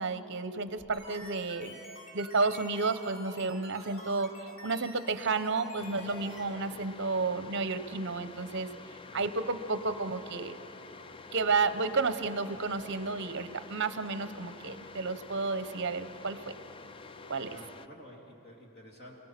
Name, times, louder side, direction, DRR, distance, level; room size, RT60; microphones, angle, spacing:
voice 1, 0.0-1.8 2.1-8.7 9.1-10.6 11.3-16.6 17.3-17.6, right 4 dB, 55° right, 11 dB, 0.8 m, -31 dB
sound 1, 0.7-6.4, equal, 65° left, 5.7 m, -48 dB
sound 2, 5.8-17.9, left 4 dB, 25° left, 0.4 m, -49 dB
voice 2, 9.1-9.5 17.5-19.2, equal, 45° left, -1 dB, 3.2 m, -51 dB
27.5 x 17.5 x 6.0 m, 3.0 s
head